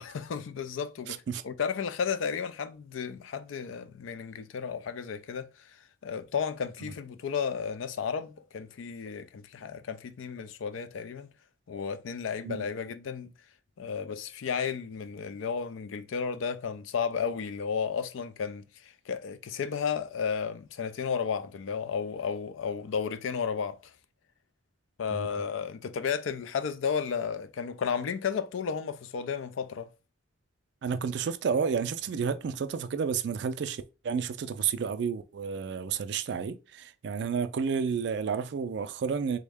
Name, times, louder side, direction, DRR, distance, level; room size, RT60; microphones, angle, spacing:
voice 1, 0.0-5.8 6.0-11.3 11.7-13.3 13.8-23.8 25.0-29.9, left 6 dB, 80° left, 0.4 m, -33 dB
voice 2, 1.1-1.4 6.8-6.9 12.4-12.7 25.1-25.3 30.8-39.4, right 6 dB, 60° right, 0.3 m, -31 dB
3.5 x 2.1 x 3.4 m
head